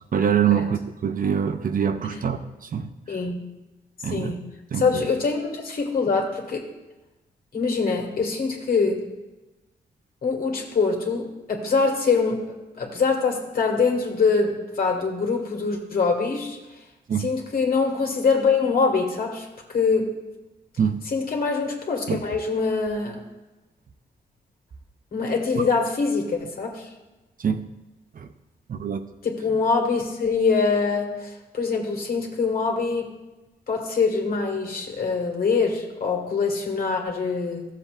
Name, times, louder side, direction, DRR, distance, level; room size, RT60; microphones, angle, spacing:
voice 1, 0.1-2.4 2.7-2.8 4.0-4.4 4.7-5.0 17.1-17.3 20.8-21.0 22.1-22.2 27.4-27.6 28.2-28.3 28.7-29.0, right 8 dB, 55° right, 8 dB, 0.7 m, -24 dB
voice 2, 3.1-3.4 4.1-4.4 4.7-6.6 7.5-9.0 10.2-12.4 12.8-16.6 17.2-20.1 21.1-23.2 25.1-26.9 29.2-33.1 33.7-37.7, left 4 dB, 60° left, 1 dB, 2.0 m, -24 dB
14.0 x 7.5 x 2.5 m, 1.1 s
cardioid pair, 60°, 17 cm